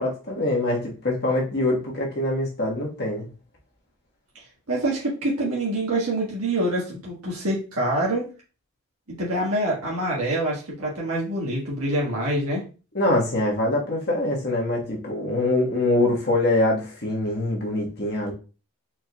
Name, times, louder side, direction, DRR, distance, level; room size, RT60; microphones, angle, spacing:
voice 1, 0.0-3.3 12.9-18.3, left 1 dB, 45° left, -2 dB, 1.4 m, -24 dB
voice 2, 4.7-8.3 9.1-12.6, right 1 dB, 85° right, -4 dB, 1.5 m, -25 dB
4.5 x 4.4 x 2.2 m, 0.33 s
head